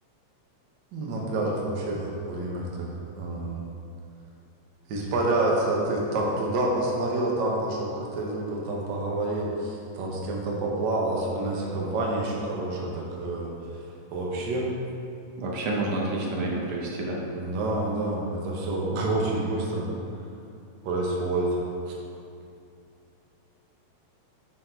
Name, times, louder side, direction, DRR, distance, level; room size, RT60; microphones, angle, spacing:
voice 1, 0.9-3.6 4.9-13.5 14.1-14.7 17.3-19.9 20.8-21.5, right 2 dB, 90° right, -2 dB, 0.9 m, -28 dB
voice 2, 15.4-17.2, right 2 dB, 65° right, -3 dB, 1.5 m, -29 dB
7.9 x 3.8 x 4.4 m, 2.6 s
omnidirectional pair, 3.3 m